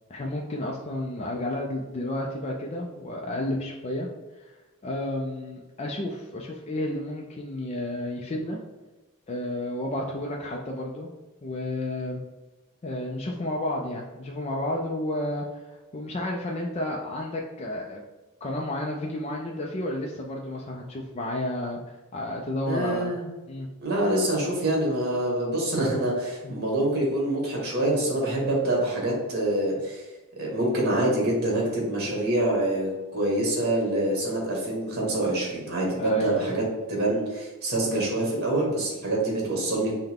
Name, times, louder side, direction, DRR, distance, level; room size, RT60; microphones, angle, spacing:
voice 1, 0.1-4.1 4.4-4.5 4.8-8.6 9.3-11.1 11.4-12.2 12.8-18.0 18.4-23.1 23.5-23.7 26.4-26.5 36.0-36.5, left 1 dB, 30° left, -1 dB, 0.4 m, -31 dB
voice 2, 22.6-23.2 23.8-30.0 30.4-36.6 36.9-39.9, right 1 dB, 50° right, -2 dB, 1.5 m, -26 dB
5.7 x 2.2 x 3.5 m, 1.2 s
head